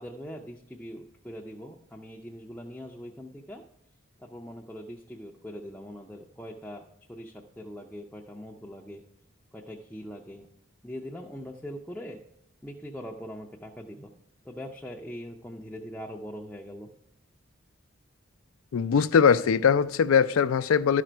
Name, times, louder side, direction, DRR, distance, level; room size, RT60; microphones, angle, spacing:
voice 1, 0.0-3.6 4.2-9.0 9.5-10.5 10.8-12.2 12.6-14.1 14.5-16.9, equal, 5° left, 0.4 m, -42 dB
voice 2, 18.7-21.0, left 6 dB, 85° left, 0.4 m, -21 dB
12.0 x 5.0 x 4.4 m
head